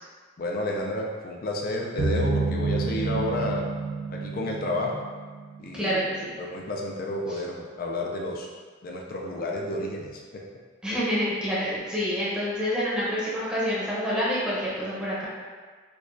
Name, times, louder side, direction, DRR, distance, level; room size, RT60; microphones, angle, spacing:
voice 1, 0.4-3.7 4.1-5.0 5.6-6.0 6.4-8.5 8.8-10.4, left 1 dB, 50° left, -1 dB, 0.4 m, -31 dB
sound 1, 2.0-5.7, right 3 dB, 85° right, 0.6 m, -29 dB
voice 2, 5.7-6.3 10.8-15.3, equal, 5° right, -9 dB, 0.8 m, -27 dB
4.6 x 2.3 x 2.5 m, 1.5 s
head